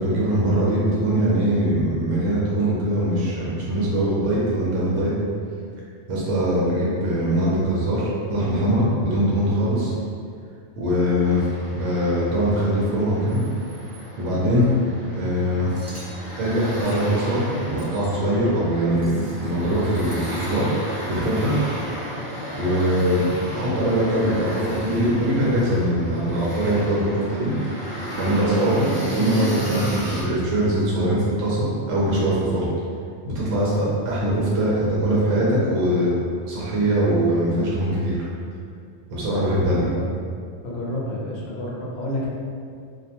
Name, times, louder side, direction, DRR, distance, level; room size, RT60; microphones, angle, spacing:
voice 1, 0.0-5.1 6.1-9.9 10.8-13.4 14.2-14.7 15.1-15.7 16.4-20.6 21.1-21.5 22.5-23.2 23.5-27.5 28.2-32.7 33.3-36.1 36.5-38.2 39.1-39.9, right 1 dB, 75° right, -6 dB, 0.9 m, -22 dB
sound 1, 11.2-30.2, right 1 dB, 20° right, 0.4 m, -34 dB
sound 2, 15.7-16.1 16.8-17.0 17.8-18.2 18.9-19.5 19.9-20.5, right 1 dB, 50° right, 0.7 m, -46 dB
voice 2, 40.6-42.3, left 1 dB, 65° left, -4 dB, 0.7 m, -29 dB
2.4 x 2.1 x 2.7 m, 2.3 s
omnidirectional pair, 1.3 m